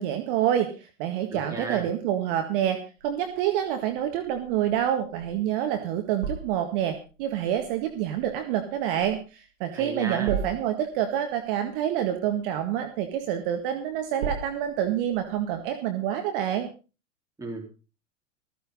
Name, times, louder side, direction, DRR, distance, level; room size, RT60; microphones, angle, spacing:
voice 1, 0.0-16.7, right 10 dB, 45° right, 6 dB, 1.9 m, -27 dB
voice 2, 1.3-1.9 9.7-10.3 17.4-17.7, right 3 dB, 10° right, 0 dB, 4.2 m, -34 dB
sound 1, 3.0-15.7, right 6 dB, 65° right, 2.3 m, -40 dB
15.0 x 15.0 x 4.0 m, 0.34 s
figure-of-eight pair, 105°, 39 cm